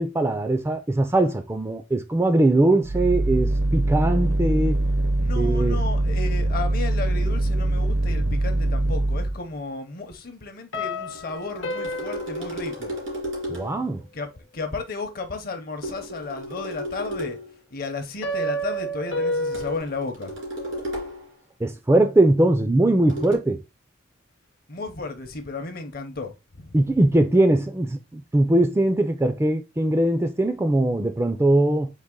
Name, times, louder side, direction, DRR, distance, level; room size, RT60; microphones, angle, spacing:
voice 1, 0.0-4.8 5.3-5.8 13.5-14.0 21.6-23.6 26.7-31.9, right 1 dB, 15° right, 0.3 m, -21 dB
sound 1, 2.8-9.4, right 1 dB, 65° right, 0.6 m, -23 dB
voice 2, 5.2-12.9 14.1-17.4 17.7-20.3 24.7-26.3 26.6-26.7, left 3 dB, 50° left, 0.7 m, -34 dB
sound 2, 10.7-13.4 18.2-19.8, equal, 75° left, 0.9 m, -30 dB
sound 3, 11.1-13.9 15.8-17.6 19.5-21.3 23.1-23.4, equal, 90° right, 2.2 m, -34 dB
4.0 x 2.9 x 3.7 m
head